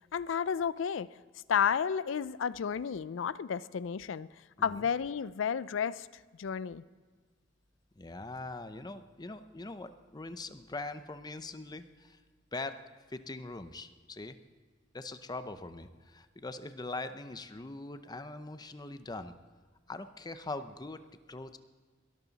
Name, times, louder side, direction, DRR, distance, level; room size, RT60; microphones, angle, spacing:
voice 1, 0.1-1.2 1.5-4.3 4.6-6.1 6.4-6.8, left 7 dB, 80° left, 0.4 m, -32 dB
voice 2, 8.0-12.2 12.5-12.8 13.1-14.4 14.9-19.4 19.9-21.0 21.3-21.6, left 2 dB, 20° left, 0.6 m, -42 dB
22.0 x 13.0 x 4.1 m
head